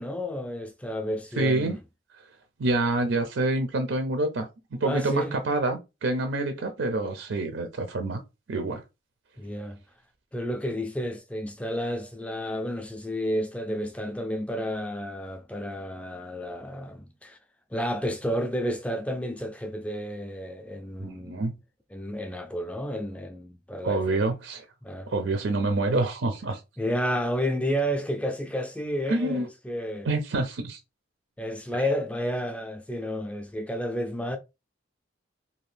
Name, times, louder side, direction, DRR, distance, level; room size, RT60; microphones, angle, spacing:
voice 1, 0.0-1.8 4.8-5.4 9.4-9.8 10.3-17.4 17.7-21.5 21.9-24.2 24.8-25.1 26.8-30.1 31.4-34.4, equal, 5° left, 0.3 m, -31 dB
voice 2, 1.4-1.8 2.6-4.5 4.8-8.2 8.5-8.8 21.0-21.5 23.8-24.6 25.1-26.6 29.1-29.5 30.1-30.8, right 2 dB, 80° right, 0.5 m, -27 dB
2.7 x 2.4 x 3.2 m
head